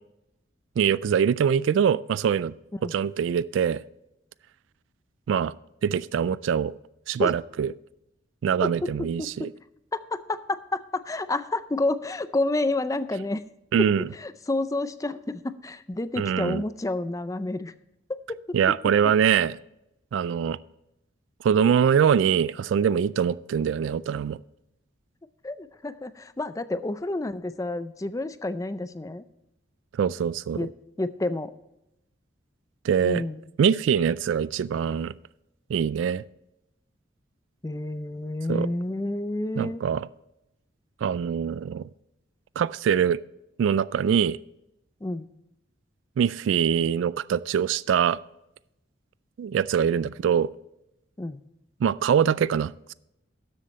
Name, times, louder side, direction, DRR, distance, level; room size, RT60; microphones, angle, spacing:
voice 1, 0.8-2.5 2.8-3.8 5.3-5.5 5.8-6.7 7.1-7.7 8.4-9.5 13.7-14.1 16.2-16.6 18.5-19.6 20.1-20.6 21.4-24.4 30.0-30.7 32.8-33.2 33.6-35.1 35.7-36.2 38.5-38.7 39.6-40.1 41.0-41.9 42.6-43.2 43.6-44.4 46.2-48.2 49.4-50.5 51.8-52.9, right 7 dB, 85° right, 0.3 m, -23 dB
voice 2, 8.6-9.5 9.9-13.4 13.8-17.7 18.1-18.4 25.4-29.2 30.6-30.7 31.0-31.5 33.0-33.4 37.6-39.8 45.0-45.3 51.2-51.4, left 2 dB, 15° left, 0.4 m, -29 dB
13.0 x 7.5 x 4.2 m
head